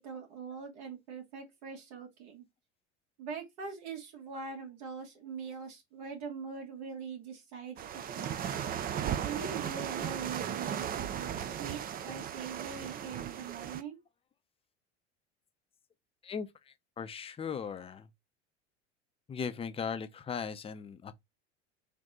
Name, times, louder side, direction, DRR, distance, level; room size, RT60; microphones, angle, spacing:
voice 1, 0.0-2.5 3.2-8.4 9.2-14.0, right 6 dB, 65° right, 2.0 m, -42 dB
sound 1, 7.8-13.8, right 9 dB, 25° right, 0.4 m, -36 dB
voice 2, 16.2-18.1 19.3-21.1, left 6 dB, 15° left, 0.6 m, -38 dB
3.9 x 2.6 x 3.6 m
hypercardioid pair, 80°, 35 cm